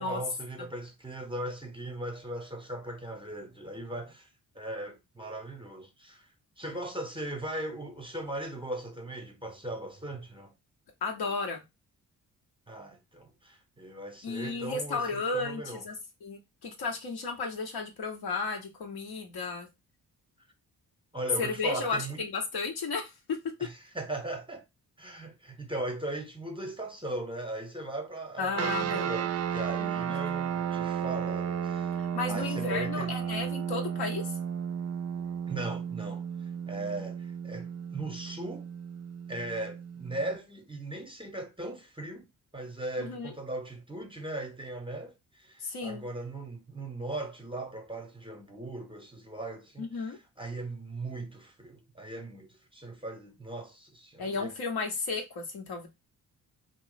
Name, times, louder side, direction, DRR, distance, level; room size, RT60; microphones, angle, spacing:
voice 1, 0.0-4.3 4.5-6.3 6.6-10.5 12.7-15.8 21.1-22.2 23.6-24.6 25.0-32.0 32.3-33.1 35.5-38.7 39.3-42.3 42.5-54.5, right 2 dB, 10° right, 0.8 m, -38 dB
voice 2, 11.0-11.6 14.2-15.9 16.2-19.7 21.4-23.4 28.4-29.1 32.0-34.4 43.0-43.3 45.6-46.0 49.8-50.2 54.2-55.9, left 4 dB, 60° left, 0.9 m, -33 dB
sound 1, 28.5-40.4, right 8 dB, 35° right, 0.4 m, -34 dB
2.4 x 2.0 x 3.8 m
hypercardioid pair, 40°, 44 cm